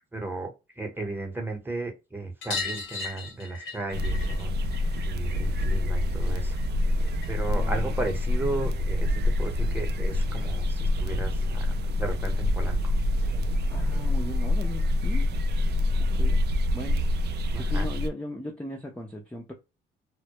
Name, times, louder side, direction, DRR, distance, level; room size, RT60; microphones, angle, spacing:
voice 1, 0.1-4.5 5.0-6.6 7.3-12.8 17.5-17.9, right 2 dB, 10° right, 0.9 m, -35 dB
sound 1, 2.4-7.5 7.8-8.9 10.3-10.4 10.6-10.7 11.0-11.1 12.4-12.5 12.8-12.9 13.2-13.3 14.5-14.6 15.4-15.5, left 4 dB, 75° left, 1.0 m, -39 dB
sound 2, 3.9-18.1, left 1 dB, 55° right, 0.4 m, -26 dB
voice 2, 7.5-8.1 13.7-15.3 16.0-16.4 16.7-17.1 17.6-19.5, left 1 dB, 5° left, 0.5 m, -38 dB
2.2 x 2.0 x 2.8 m
cardioid pair, 90°, 20 cm